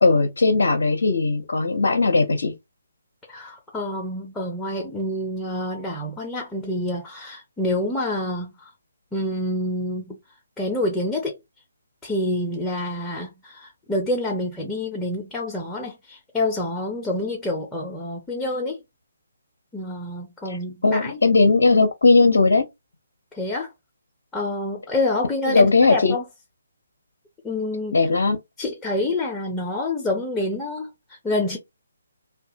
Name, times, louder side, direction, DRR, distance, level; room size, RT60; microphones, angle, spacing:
voice 1, 0.0-2.5 20.4-20.6 20.8-22.6 25.5-26.1 27.9-28.4, left 3 dB, 60° left, 0.6 m, -18 dB
voice 2, 3.3-8.7 9.1-10.2 10.6-11.4 12.0-18.8 19.7-21.2 23.3-23.7 24.3-26.2 27.4-28.0 28.6-31.6, left 1 dB, 10° left, 0.6 m, -27 dB
2.7 x 2.3 x 2.7 m
figure-of-eight pair, 140°, 0 cm